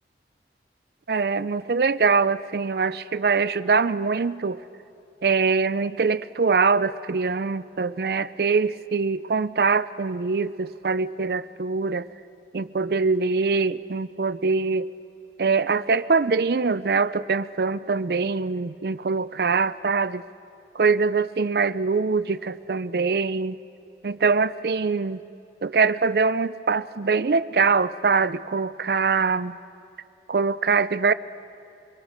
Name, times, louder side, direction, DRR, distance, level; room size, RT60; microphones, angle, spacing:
voice 1, 1.1-4.6 5.2-12.1 12.5-14.9 15.4-20.2 20.7-23.6 24.0-25.2 25.6-29.6 30.3-31.1, right 4 dB, 60° right, 15 dB, 0.5 m, -23 dB
25.0 x 21.0 x 6.5 m, 2.7 s
head